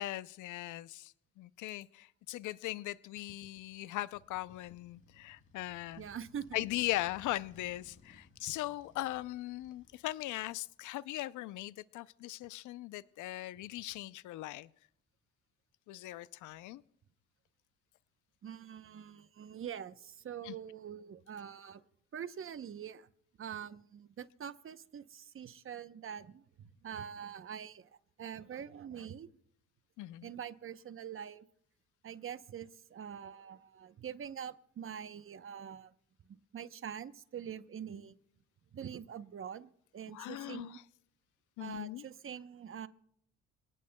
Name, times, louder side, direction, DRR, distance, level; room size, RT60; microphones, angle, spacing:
voice 1, 0.0-6.0 6.5-14.7 15.9-16.8 20.4-20.5 30.0-30.3 40.1-40.7 41.6-42.0, left 16 dB, 80° left, 17 dB, 0.5 m, -39 dB
Motorcycle, 4.1-10.8, left 3 dB, 45° left, 3.1 m, -62 dB
voice 2, 6.0-6.7 18.4-21.8 22.1-23.1 23.4-27.9 28.2-29.3 30.2-31.5 32.0-35.9 36.3-38.2 38.7-40.8 41.6-42.9, right 8 dB, 45° right, 13 dB, 0.8 m, -45 dB
27.5 x 18.0 x 2.2 m, 0.70 s
cardioid pair, 90°, 30 cm